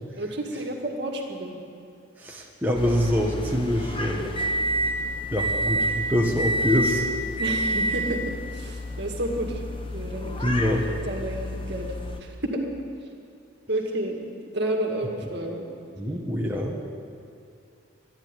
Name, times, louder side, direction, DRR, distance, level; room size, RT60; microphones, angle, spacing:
voice 1, 0.2-1.5 7.4-8.2 8.5-9.5 9.9-10.3 11.1-11.9 12.4-12.6 13.7-15.6, right 1 dB, 55° right, 1 dB, 2.0 m, -30 dB
voice 2, 2.2-4.3 5.3-7.1 10.4-10.9 16.0-16.8, equal, 10° right, -3 dB, 1.2 m, -25 dB
sound 1, 2.7-12.2, right 1 dB, 25° left, 0.9 m, -29 dB
12.0 x 11.5 x 9.6 m, 2.5 s
head